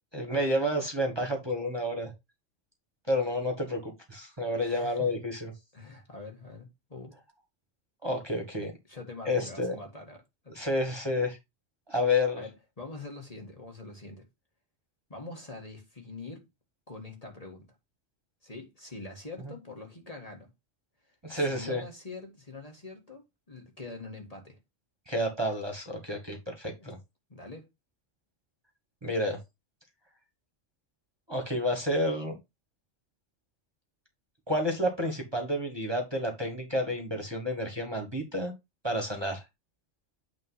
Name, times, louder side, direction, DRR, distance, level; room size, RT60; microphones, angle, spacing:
voice 1, 0.1-2.1 3.1-5.5 8.0-8.7 9.3-9.7 10.5-11.4 11.9-12.4 21.2-21.8 25.1-27.0 29.0-29.4 31.3-32.4 34.5-38.5 38.8-39.4, left 1 dB, 20° right, 1.6 m, -30 dB
voice 2, 4.6-5.1 5.7-7.2 8.9-10.6 12.4-14.3 15.1-16.5 16.9-17.8 18.4-20.5 21.1-24.6 26.8-26.9 27.3-27.7, left 3 dB, 30° left, 1.8 m, -44 dB
8.9 x 3.2 x 5.6 m
omnidirectional pair, 1.3 m